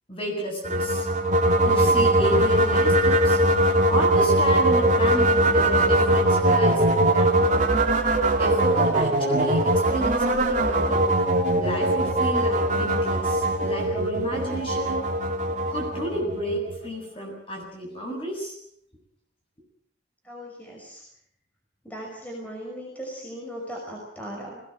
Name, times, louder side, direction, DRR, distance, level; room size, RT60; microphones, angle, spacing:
voice 1, 0.1-1.1 1.7-3.4 3.9-7.4 8.4-11.0 11.5-15.1 15.5-18.6, equal, 30° left, 1 dB, 7.9 m, -31 dB
sound 1, 0.6-16.9, right 1 dB, 45° right, 3.1 m, -21 dB
voice 2, 20.3-21.0 21.8-24.6, equal, 10° left, -2 dB, 5.7 m, -38 dB
20.5 x 18.5 x 8.1 m, 0.70 s
head